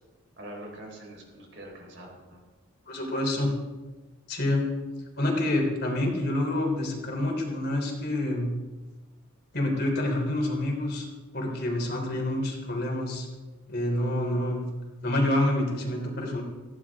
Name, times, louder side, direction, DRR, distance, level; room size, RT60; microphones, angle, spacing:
voice 1, 0.4-2.4, right 1 dB, 55° right, 0 dB, 4.5 m, -44 dB
voice 2, 2.9-3.5 4.3-4.6 5.2-8.5 9.5-11.1 11.3-13.3 13.7-14.6 15.0-16.4, left 1 dB, 50° left, 1 dB, 3.5 m, -27 dB
18.5 x 16.0 x 3.7 m, 1.3 s
head